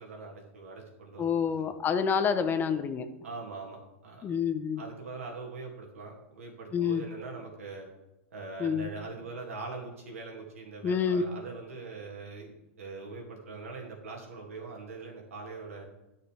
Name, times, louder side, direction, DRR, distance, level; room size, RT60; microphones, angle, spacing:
voice 1, 0.0-1.7 3.2-4.3 4.8-7.9 8.3-15.8, right 3 dB, 90° right, -1 dB, 2.3 m, -42 dB
voice 2, 1.2-3.1 4.2-4.8 6.7-7.0 8.6-8.9 10.8-11.2, left 6 dB, 25° left, 9 dB, 0.7 m, -28 dB
11.5 x 6.6 x 3.4 m, 0.93 s
hypercardioid pair, 120°, 7 cm